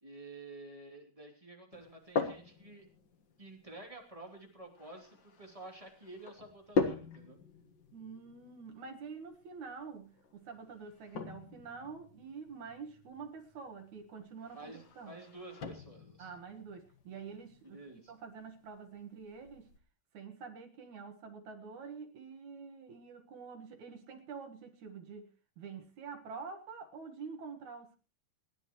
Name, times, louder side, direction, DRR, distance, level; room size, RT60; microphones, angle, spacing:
voice 1, 0.0-2.9 3.4-7.4 14.5-16.3 17.6-18.1, right 2 dB, 10° right, 1 dB, 2.4 m, -50 dB
sound 1, 1.7-19.8, left 4 dB, 55° left, 1.3 m, -42 dB
voice 2, 7.9-15.2 16.2-19.7 20.1-25.3 25.6-28.0, right 5 dB, 60° right, 4 dB, 2.7 m, -47 dB
28.5 x 11.0 x 3.1 m, 0.32 s
omnidirectional pair, 4.3 m